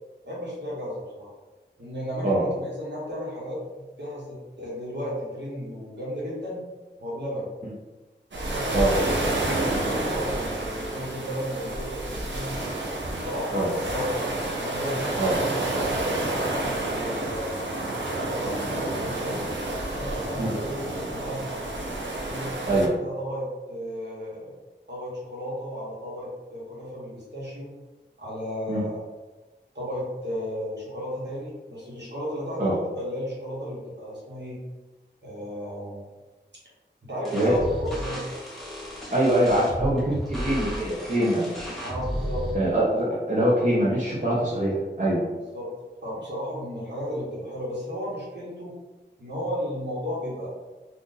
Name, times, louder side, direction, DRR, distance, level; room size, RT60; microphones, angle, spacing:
voice 1, 0.2-1.3 1.8-6.6 7.0-7.5 8.5-12.7 13.1-14.1 14.6-17.5 18.0-19.5 19.9-21.5 22.2-24.5 24.9-27.7 28.2-29.0 29.7-34.6 35.2-36.0 37.0-38.2 41.8-42.5 45.5-45.7 46.0-48.7 49.2-50.5, equal, 70° right, -6 dB, 1.2 m, -34 dB
sound 1, 8.3-22.9, right 2 dB, 90° right, 0.6 m, -29 dB
sound 2, 37.2-42.5, equal, ahead, 1.0 m, -33 dB
voice 2, 39.1-41.8 42.5-45.2, right 1 dB, 45° right, -7 dB, 0.8 m, -23 dB
2.6 x 2.5 x 3.8 m, 1.2 s
wide cardioid pair, 55°, 19 cm